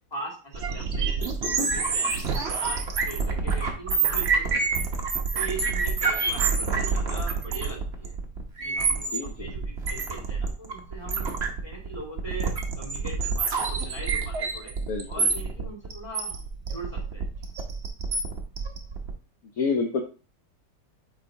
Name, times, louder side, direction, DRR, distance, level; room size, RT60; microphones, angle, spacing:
voice 1, 0.1-1.1 1.5-4.9 5.3-8.1 8.6-9.1 9.3-11.3 11.6-14.7 15.1-16.4 16.7-17.5, right 2 dB, 15° left, -3 dB, 2.6 m, -40 dB
sound 1, 0.5-19.1, right 4 dB, 45° right, 1.1 m, -27 dB
voice 2, 9.1-9.5 14.9-15.3 19.6-20.0, left 5 dB, 60° left, 3 dB, 1.1 m, -28 dB
8.9 x 3.9 x 2.8 m, 0.35 s
omnidirectional pair, 1.8 m